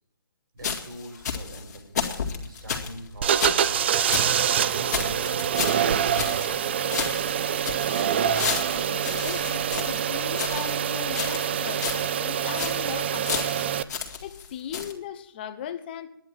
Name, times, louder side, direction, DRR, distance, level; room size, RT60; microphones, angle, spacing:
voice 1, 0.5-2.0 2.4-3.9 4.5-7.5, right 1 dB, 70° right, 5.3 m, -44 dB
sound 1, 0.6-4.3 4.6-4.7 4.9-6.7 6.9-10.8 11.1-11.6 11.8-12.1 12.4-12.9 13.2-14.5 14.7-14.9, left 6 dB, 50° left, 2.3 m, -32 dB
sound 2, 3.2-13.8, right 9 dB, 30° right, 0.5 m, -25 dB
voice 2, 8.4-16.1, left 9 dB, 25° left, 1.0 m, -38 dB
11.0 x 10.5 x 8.9 m
hypercardioid pair, 165°, 12 cm